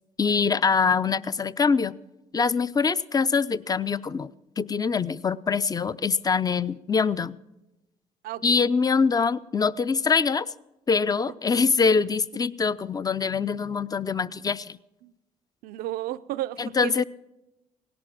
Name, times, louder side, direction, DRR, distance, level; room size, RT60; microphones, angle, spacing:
voice 1, 0.2-2.0 2.3-4.3 4.6-7.4 8.4-10.5 10.9-14.8 16.6-17.0, left 5 dB, 25° left, 17 dB, 0.5 m, -24 dB
voice 2, 8.2-8.6 15.0-15.1 15.6-17.0, right 15 dB, 80° right, 14 dB, 0.5 m, -33 dB
17.5 x 11.5 x 6.0 m, 0.97 s
supercardioid pair, 65°, 15 cm